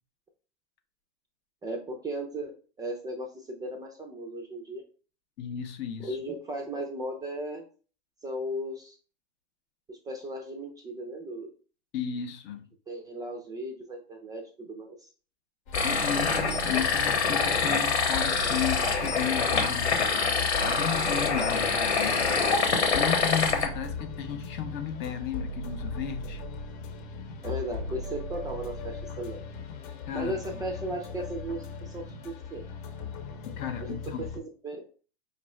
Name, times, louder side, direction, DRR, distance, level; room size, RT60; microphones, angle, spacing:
voice 1, 1.6-4.8 6.0-7.6 8.2-9.0 9.9-11.5 12.9-15.1 27.4-29.4 30.1-32.6 33.8-34.8, right 1 dB, 10° right, 0.5 m, -36 dB
voice 2, 5.4-6.2 11.9-12.7 15.8-20.3 20.6-22.3 22.9-26.4 30.1-30.6 33.6-34.2, left 9 dB, 30° left, 0.6 m, -34 dB
sound 1, 15.7-23.7, left 5 dB, 90° left, 1.3 m, -26 dB
sound 2, 15.7-34.4, left 3 dB, 45° left, 1.0 m, -38 dB
5.2 x 2.5 x 3.2 m
hypercardioid pair, 120°, 33 cm